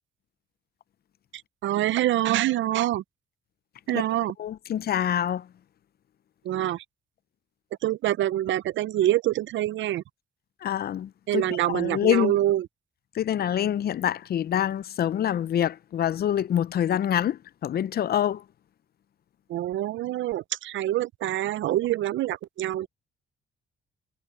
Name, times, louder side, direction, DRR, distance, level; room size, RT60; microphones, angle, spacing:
voice 1, 1.6-3.0 3.9-4.3 6.5-6.8 7.8-10.0 11.3-12.7 19.5-22.9, right 13 dB, 70° right, 0.6 m, -25 dB
voice 2, 4.4-5.5 10.6-12.3 13.1-18.4, left 10 dB, 50° left, 0.5 m, -26 dB
cardioid pair, 90°, 20 cm